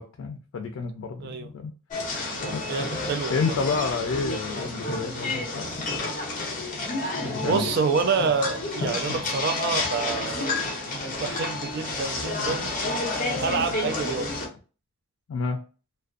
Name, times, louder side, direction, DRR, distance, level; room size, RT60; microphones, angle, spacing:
voice 1, 0.0-1.7 2.5-2.9 3.3-5.6 7.2-7.7 15.3-15.6, left 4 dB, 85° left, 0.4 m, -30 dB
voice 2, 1.2-1.5 2.7-3.6 7.4-10.6 10.9-12.8 13.4-14.4, right 5 dB, 55° right, 0.3 m, -28 dB
sound 1, 1.9-14.5, left 2 dB, 40° left, 0.6 m, -30 dB
2.4 x 2.2 x 2.3 m
head